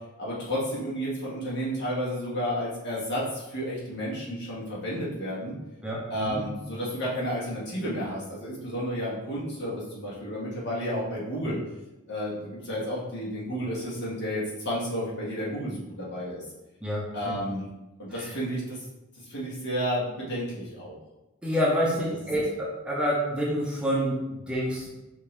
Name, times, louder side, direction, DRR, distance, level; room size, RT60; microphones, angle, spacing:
voice 1, 0.2-5.5 6.1-11.6 12.1-16.4 17.1-17.6 18.0-18.8 19.2-21.0, equal, 60° left, -6 dB, 1.5 m, -31 dB
voice 2, 5.8-6.4 16.8-17.4 18.1-18.3 21.4-24.9, equal, 5° right, -5 dB, 0.7 m, -28 dB
5.1 x 2.7 x 3.3 m, 1.0 s
head